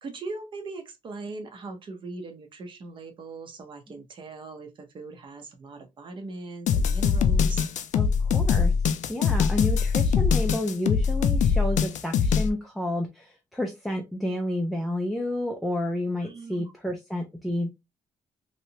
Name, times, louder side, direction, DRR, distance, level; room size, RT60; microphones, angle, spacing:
voice 1, 0.0-7.7 16.2-16.7, right 3 dB, 35° right, 0.7 m, -40 dB
sound 1, 6.7-12.5, left 6 dB, 65° left, 0.4 m, -22 dB
voice 2, 7.9-8.7 9.1-17.7, left 1 dB, ahead, 0.4 m, -30 dB
3.1 x 2.8 x 2.8 m
cardioid pair, 175°, 14 cm